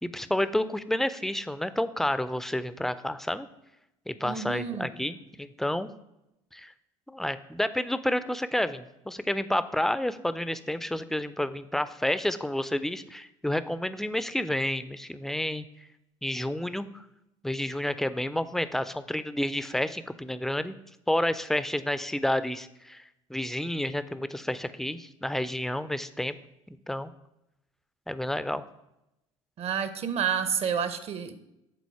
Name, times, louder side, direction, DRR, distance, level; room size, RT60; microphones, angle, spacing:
voice 1, 0.0-3.5 4.1-5.9 6.5-6.7 7.1-15.7 16.2-17.0 17.4-20.8 21.1-23.0 23.3-26.4 26.7-27.1 28.1-28.6, left 1 dB, ahead, 13 dB, 0.5 m, -30 dB
voice 2, 4.2-4.9 29.6-31.3, right 7 dB, 40° right, 12 dB, 0.8 m, -29 dB
11.5 x 4.0 x 4.7 m, 0.87 s
figure-of-eight pair, 60°, 16 cm